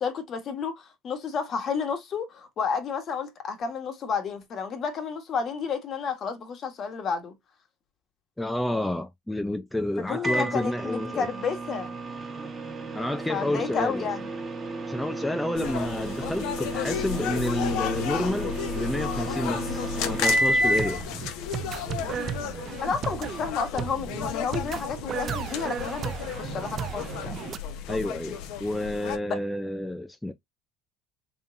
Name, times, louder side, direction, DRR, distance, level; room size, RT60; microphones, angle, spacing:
voice 1, 0.0-7.3 10.0-11.9 13.3-14.3 22.8-26.1 26.4-27.4 29.3-29.4, left 5 dB, 45° left, 1.4 m, -31 dB
voice 2, 8.4-11.3 12.9-14.1 14.9-21.0 27.9-30.3, left 1 dB, 5° left, 0.5 m, -30 dB
Microwave oven, 10.2-21.0, right 1 dB, 25° right, 1.3 m, -31 dB
sound 1, 15.5-29.2, left 8 dB, 70° left, 0.9 m, -33 dB
sound 2, 20.5-27.6, right 8 dB, 45° right, 0.4 m, -35 dB
3.7 x 3.5 x 2.6 m
supercardioid pair, 95°, 0 cm